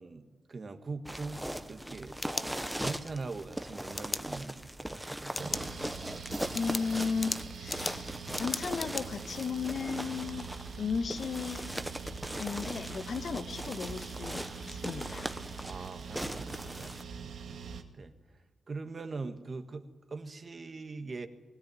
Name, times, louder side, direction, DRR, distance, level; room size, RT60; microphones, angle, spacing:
voice 1, 0.0-1.4 1.7-2.2 2.8-5.7 15.6-18.1 18.7-21.3, right 3 dB, 40° right, 7 dB, 1.6 m, -42 dB
sound 1, 1.0-17.0, right 1 dB, 5° right, 1.1 m, -40 dB
sound 2, 2.0-3.0 4.0-4.2 5.3-5.7 6.1-6.2 6.6-9.0, left 3 dB, 30° left, 0.6 m, -37 dB
sound 3, 5.4-17.8, right 6 dB, 80° right, 2.1 m, -44 dB
voice 2, 6.5-8.1 8.4-10.5 10.8-11.6 12.4-15.3, left 5 dB, 55° left, 10 dB, 1.4 m, -35 dB
21.0 x 17.0 x 9.3 m, 1.3 s
wide cardioid pair, 125°, 0 cm